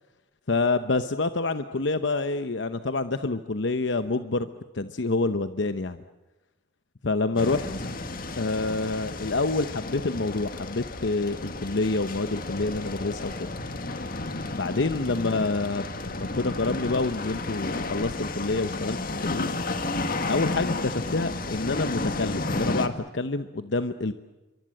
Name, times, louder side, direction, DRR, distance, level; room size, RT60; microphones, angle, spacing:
voice 1, 0.5-4.5 4.7-6.0 7.0-7.7 8.4-13.5 14.5-19.6 20.3-24.1, left 3 dB, 70° left, 10 dB, 0.9 m, -27 dB
sound 1, 7.4-22.9, left 2 dB, 50° left, 1.9 m, -32 dB
27.5 x 24.5 x 7.7 m, 1.1 s
head